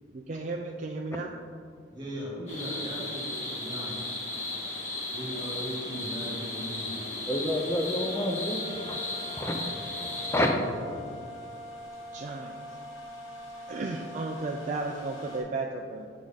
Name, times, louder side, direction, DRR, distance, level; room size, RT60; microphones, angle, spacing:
voice 1, 0.1-1.3 12.1-12.6 13.7-16.1, right 3 dB, 40° right, 2 dB, 0.3 m, -34 dB
voice 2, 1.9-4.0 5.1-7.0, equal, 20° right, -4 dB, 1.9 m, -38 dB
sound 1, 2.5-10.5, left 2 dB, 35° left, 1.7 m, -35 dB
voice 3, 7.3-8.6 8.9-9.0 9.4-9.6 10.3-10.5 10.9-11.1, left 1 dB, 15° left, 2 dB, 0.6 m, -28 dB
sound 2, 8.0-15.4, left 1 dB, 80° left, 1.6 m, -43 dB
8.3 x 4.9 x 4.0 m, 2.2 s
head